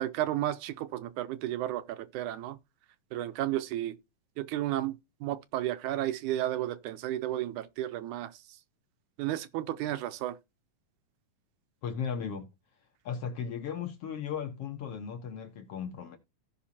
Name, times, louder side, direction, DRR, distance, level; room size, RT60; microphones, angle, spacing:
voice 1, 0.0-2.6 3.1-4.0 4.4-5.0 5.2-8.4 9.2-10.4, right 13 dB, 80° right, 2.1 m, -32 dB
voice 2, 11.8-12.5 13.0-16.2, left 7 dB, 60° left, 1.8 m, -36 dB
16.0 x 5.7 x 2.8 m
omnidirectional pair, 3.6 m